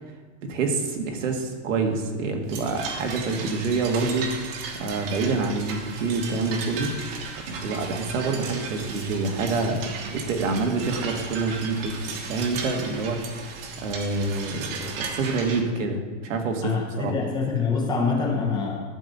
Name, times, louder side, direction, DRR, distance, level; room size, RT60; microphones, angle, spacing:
voice 1, 0.4-4.4 4.8-7.0 7.5-13.3 13.8-17.1, right 3 dB, 80° right, 3 dB, 1.8 m, -27 dB
sound 1, 2.5-15.6, right 5 dB, 50° right, 1.4 m, -35 dB
voice 2, 16.6-18.8, left 4 dB, 10° left, 0 dB, 0.7 m, -25 dB
12.0 x 4.1 x 6.6 m, 1.4 s
supercardioid pair, 165°, 38 cm